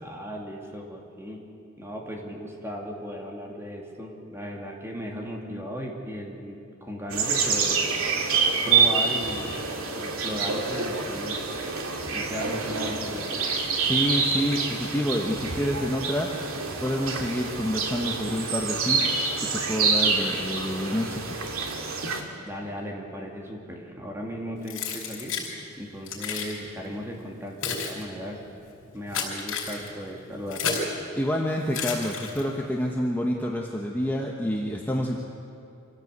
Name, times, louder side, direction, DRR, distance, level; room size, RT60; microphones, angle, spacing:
voice 1, 0.0-1.4 1.8-7.9 8.6-9.5 9.9-11.5 12.1-13.4 22.4-25.3 25.8-28.4 28.9-30.6, equal, 10° right, 0 dB, 2.6 m, -36 dB
sound 1, 7.1-22.2, right 5 dB, 85° right, 2.4 m, -27 dB
voice 2, 13.8-19.2 19.5-21.4 31.2-35.1, equal, 10° left, -1 dB, 1.3 m, -28 dB
Keys jangling, 24.7-25.5 26.1-26.5 27.3-31.0 31.7-32.6, left 6 dB, 75° left, 5.2 m, -32 dB
25.5 x 16.0 x 8.2 m, 2.6 s
head